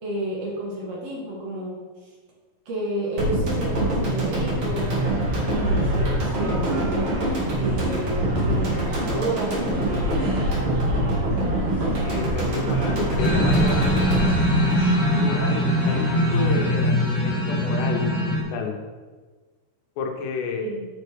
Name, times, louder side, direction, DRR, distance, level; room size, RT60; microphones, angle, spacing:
voice 1, 0.0-1.8 2.6-5.0 5.4-7.1 7.6-10.2 20.6-20.9, right 1 dB, 85° right, -4 dB, 1.3 m, -31 dB
sound 1, 3.2-15.5 15.8-15.9, right 1 dB, 45° right, 1.6 m, -24 dB
sound 2, 4.7-16.5, right 2 dB, 70° right, 3.1 m, -39 dB
voice 2, 12.0-14.4 15.2-18.7 20.0-20.7, left 4 dB, 80° left, 2 dB, 3.0 m, -30 dB
sound 3, 13.2-18.4, equal, 55° left, 2.0 m, -22 dB
7.0 x 6.7 x 3.4 m, 1.4 s
omnidirectional pair, 5.0 m